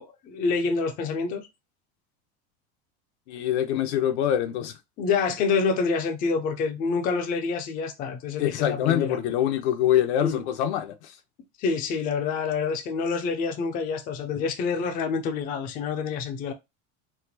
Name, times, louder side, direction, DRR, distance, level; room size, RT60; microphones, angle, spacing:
voice 1, 0.0-1.5 5.0-9.2 10.2-10.4 11.6-16.5, left 5 dB, 25° left, 0.5 m, -27 dB
voice 2, 3.3-4.8 8.4-11.1, left 11 dB, 75° left, 0.9 m, -24 dB
4.2 x 2.5 x 2.7 m
cardioid pair, 170°, 34 cm